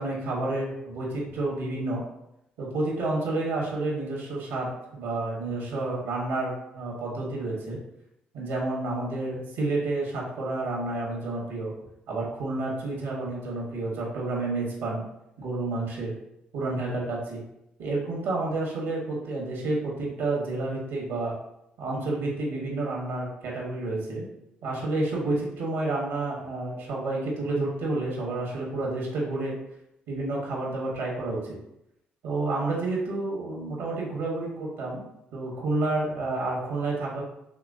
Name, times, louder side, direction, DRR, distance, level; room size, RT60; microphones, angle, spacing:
voice 1, 0.0-2.0 2.6-7.8 8.3-11.7 12.1-15.0 15.4-16.2 16.5-17.4 17.8-21.3 21.8-24.2 24.6-29.5 30.1-31.5 32.2-35.0 35.3-37.2, right 2 dB, 85° right, -3 dB, 1.4 m, -30 dB
4.4 x 3.2 x 2.7 m, 0.82 s
hypercardioid pair, 50°, 4 cm